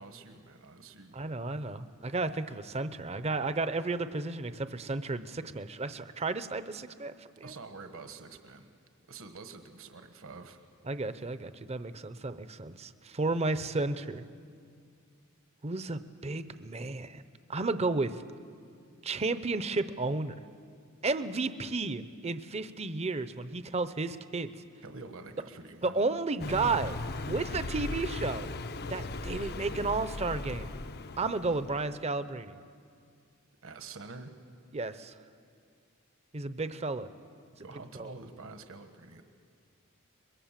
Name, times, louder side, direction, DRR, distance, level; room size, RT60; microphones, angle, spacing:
voice 1, 0.0-1.3 7.4-8.7 9.1-10.6 24.8-26.0 33.6-34.3 37.6-39.2, right 3 dB, 65° right, 7 dB, 1.4 m, -47 dB
voice 2, 1.1-7.5 10.9-14.2 15.6-17.2 17.5-18.2 19.0-20.3 21.0-24.5 25.8-27.0 27.3-28.5 28.9-30.7 31.2-32.5 34.7-35.1 36.3-37.1 37.9-38.1, right 3 dB, 30° right, 12 dB, 0.7 m, -33 dB
Car passing by, 26.4-31.9, left 2 dB, 50° left, 0.6 m, -38 dB
24.0 x 21.5 x 7.5 m, 2.2 s
head